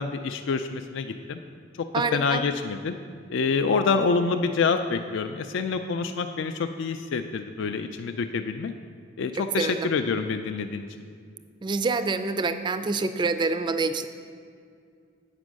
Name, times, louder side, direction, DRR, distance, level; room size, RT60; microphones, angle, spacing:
voice 1, 0.0-1.4 2.1-2.9 3.3-8.7 9.2-10.9, left 4 dB, 65° left, 7 dB, 0.3 m, -27 dB
voice 2, 1.9-2.4 9.3-9.9 11.6-14.1, right 3 dB, 25° right, 10 dB, 0.3 m, -26 dB
8.2 x 5.3 x 6.3 m, 2.2 s
head